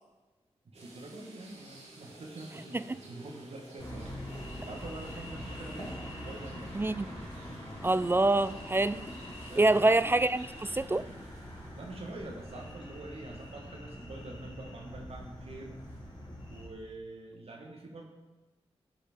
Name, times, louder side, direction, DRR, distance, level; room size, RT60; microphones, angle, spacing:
voice 1, 0.6-4.1 4.6-6.8 9.4-10.2 11.7-15.8 16.5-18.0, right 2 dB, 65° right, 0 dB, 1.7 m, -45 dB
sound 1, 0.7-13.0 13.4-13.5 15.8-16.0, right 2 dB, 90° right, 2.0 m, -54 dB
sound 2, 3.8-16.7, equal, 40° left, 3.2 m, -44 dB
voice 2, 6.7-7.1 7.8-9.1 9.6-11.0, right 2 dB, 20° right, 15 dB, 0.3 m, -25 dB
14.5 x 5.0 x 4.6 m, 1.2 s
cardioid pair, 55°, 11 cm